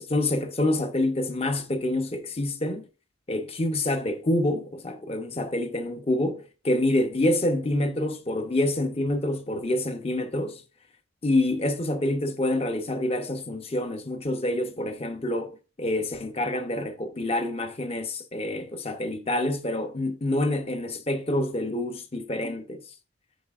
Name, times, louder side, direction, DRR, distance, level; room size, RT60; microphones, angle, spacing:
voice 1, 0.0-2.9 3.3-10.6 11.2-22.8, left 1 dB, 30° left, 0.8 m, -27 dB
10.5 x 4.1 x 2.4 m
head